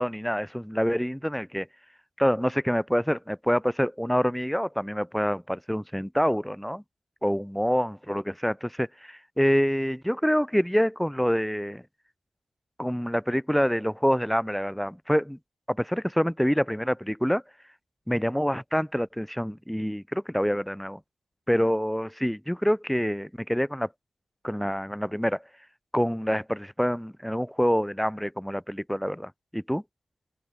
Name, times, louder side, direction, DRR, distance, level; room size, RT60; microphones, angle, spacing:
voice 1, 0.0-1.7 2.2-6.8 7.2-11.8 12.8-15.4 15.7-17.4 18.1-21.0 21.5-23.9 24.4-25.4 25.9-29.8, equal, ahead, 6.7 m, -26 dB
open air
cardioid pair, 65°, 4 cm